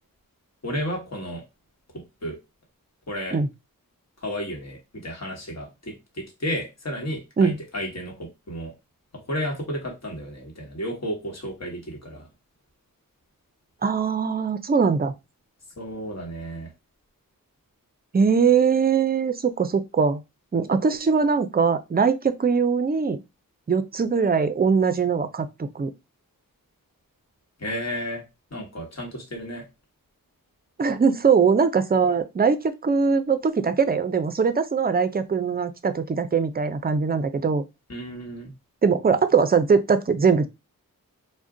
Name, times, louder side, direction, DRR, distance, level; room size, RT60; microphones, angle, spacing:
voice 1, 0.6-1.4 2.2-2.4 3.1-3.4 4.2-8.7 9.1-12.3 15.8-16.7 27.6-28.2 28.5-29.6 37.9-38.5, equal, 45° left, 1.3 m, -32 dB
voice 2, 13.8-15.1 18.1-20.2 20.5-23.2 23.7-25.9 30.8-37.6 38.8-40.5, right 5 dB, 25° right, 0.4 m, -21 dB
2.4 x 2.1 x 3.6 m
cardioid pair, 45°, 36 cm